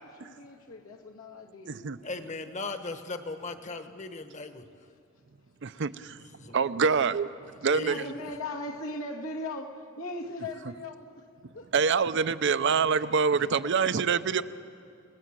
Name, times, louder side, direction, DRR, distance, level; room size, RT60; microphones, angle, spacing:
voice 1, 0.0-2.5 5.7-5.8 7.8-11.3 11.5-11.7 12.6-12.8 13.4-14.4, left 2 dB, 85° left, 1 dB, 2.2 m, -40 dB
voice 2, 2.0-4.6 6.1-6.9 7.7-8.1, left 3 dB, 35° left, 8 dB, 1.3 m, -38 dB
voice 3, 5.6-6.2 6.5-7.3 7.6-8.0 11.7-14.4, right 5 dB, 60° right, 13 dB, 0.6 m, -25 dB
29.5 x 18.0 x 7.5 m, 2.5 s
head